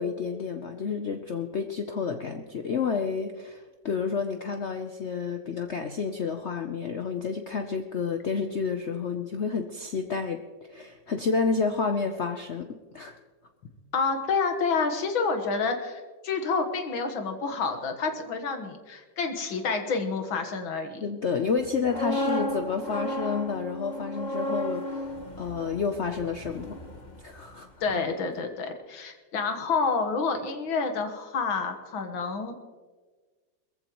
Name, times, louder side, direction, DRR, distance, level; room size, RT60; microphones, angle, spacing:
voice 1, 0.0-10.4 10.7-13.2 21.0-25.1 25.4-26.8 27.2-27.7, left 5 dB, 70° left, 6 dB, 0.6 m, -30 dB
voice 2, 13.9-21.0 27.8-32.6, left 4 dB, 90° left, 5 dB, 2.2 m, -29 dB
sound 1, 21.6-27.6 27.9-28.1, left 1 dB, 25° left, 1.2 m, -34 dB
21.5 x 15.0 x 3.1 m, 1.4 s
omnidirectional pair, 2.1 m